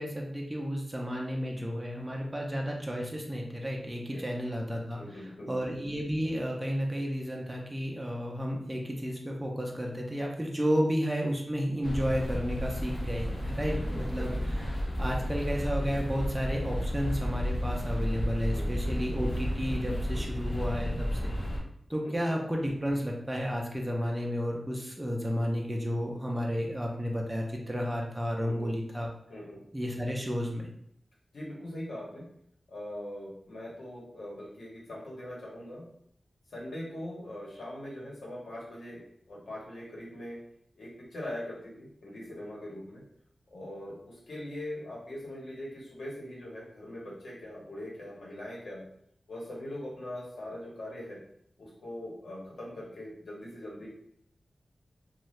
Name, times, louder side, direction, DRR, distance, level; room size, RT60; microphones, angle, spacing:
voice 1, 0.0-14.3 15.0-21.3 21.9-29.1 29.7-30.7, equal, 10° right, -1 dB, 0.5 m, -32 dB
voice 2, 4.9-5.5 10.7-10.8 13.6-14.3 18.5-19.0 20.1-20.3 22.0-22.4 28.4-28.7 29.3-29.6 31.3-32.3 32.7-35.9 36.5-40.4 40.8-43.0 43.5-48.8 49.3-51.2 51.6-53.9, left 1 dB, 85° left, -5 dB, 1.1 m, -42 dB
sound 1, 11.8-21.6, equal, 50° left, 0.8 m, -32 dB
2.6 x 2.3 x 3.1 m, 0.70 s
wide cardioid pair, 100°, 0 cm